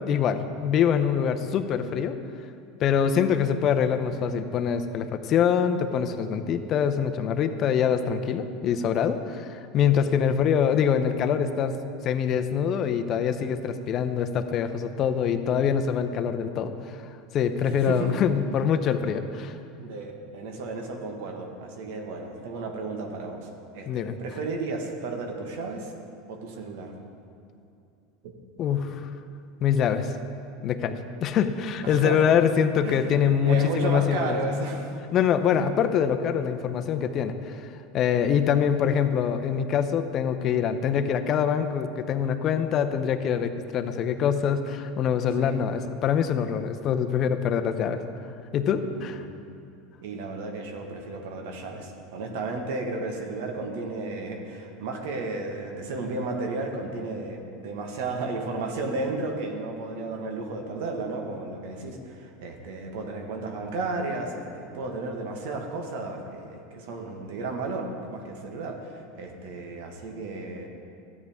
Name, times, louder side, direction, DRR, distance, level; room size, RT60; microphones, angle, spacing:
voice 1, 0.0-2.2 2.8-11.7 12.0-16.7 17.3-19.5 23.9-24.1 28.6-29.1 29.6-30.1 30.6-34.4 35.1-37.7 37.9-48.0 48.5-49.2, left 8 dB, 40° left, 8 dB, 0.7 m, -24 dB
voice 2, 17.6-18.2 19.8-25.9 26.3-26.9 28.2-28.3 31.8-32.3 32.8-33.1 33.4-34.9 35.5-35.6 45.4-45.6 48.7-49.3 50.0-70.7, right 3 dB, 75° right, 3 dB, 1.4 m, -33 dB
13.5 x 9.4 x 3.6 m, 2.6 s
supercardioid pair, 120°, 0 cm